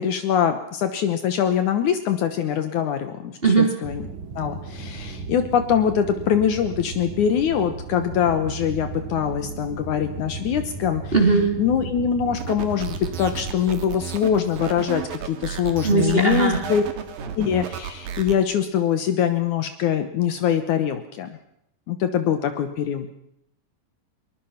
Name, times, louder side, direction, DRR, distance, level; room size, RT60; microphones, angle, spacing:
voice 1, 0.0-4.0 4.4-11.1 11.6-16.8 17.4-21.4 21.9-23.1, left 8 dB, 65° left, 9 dB, 2.4 m, -23 dB
sound 1, 3.8-13.6, right 4 dB, 60° right, 3.7 m, -35 dB
voice 2, 11.1-11.5 15.8-16.6, right 4 dB, 15° right, 2 dB, 3.3 m, -18 dB
sound 2, 12.4-18.4, right 8 dB, 85° right, 3.6 m, -33 dB
22.5 x 20.5 x 5.8 m, 0.73 s
omnidirectional pair, 4.0 m